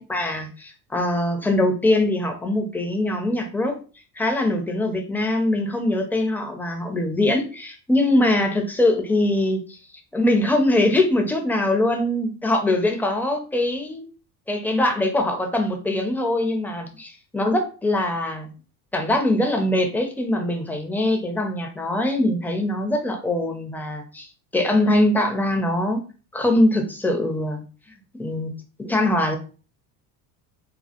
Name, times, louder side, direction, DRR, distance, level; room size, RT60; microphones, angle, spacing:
voice 1, 0.1-3.8 4.2-9.8 10.1-14.0 14.5-18.5 18.9-24.3 24.5-26.0 26.3-27.6 28.2-28.5 28.8-29.4, left 1 dB, 5° left, 3 dB, 0.4 m, -22 dB
2.1 x 2.1 x 2.8 m, 0.36 s
hypercardioid pair, 65°, 49 cm